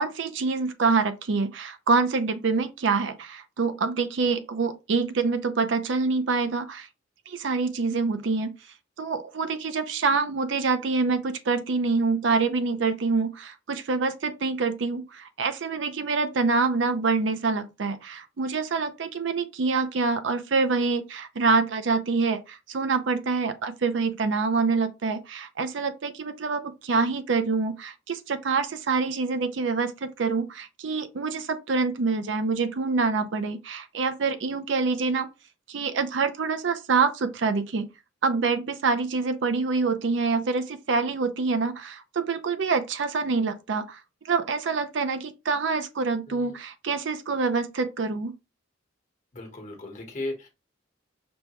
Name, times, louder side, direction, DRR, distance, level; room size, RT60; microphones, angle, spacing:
voice 1, 0.0-6.9 7.3-8.5 9.0-35.3 35.7-37.9 38.2-44.0 44.2-48.3, right 4 dB, 70° right, 0.5 m, -26 dB
voice 2, 49.3-50.5, left 2 dB, 40° left, 1.3 m, -36 dB
5.2 x 2.2 x 3.0 m
head